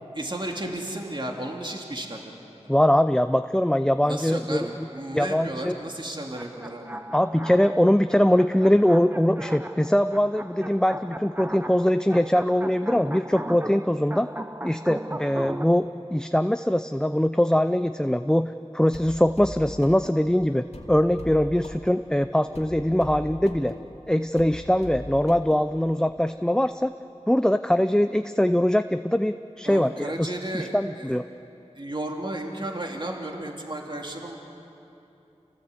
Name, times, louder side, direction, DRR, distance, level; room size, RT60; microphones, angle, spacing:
voice 1, 0.1-2.3 4.0-7.0 29.6-31.2 31.7-34.4, right 1 dB, 40° right, 1 dB, 2.4 m, -33 dB
voice 2, 2.7-4.9 5.1-5.8 7.1-14.3 14.6-23.7 24.1-26.9 27.3-31.2, equal, 5° left, 10 dB, 0.5 m, -22 dB
sound 1, 6.3-15.7, right 1 dB, 15° right, 0.9 m, -38 dB
sound 2, 18.9-26.1, left 2 dB, 65° left, 2.4 m, -41 dB
28.5 x 18.0 x 8.3 m, 2.9 s
wide cardioid pair, 45°, 12 cm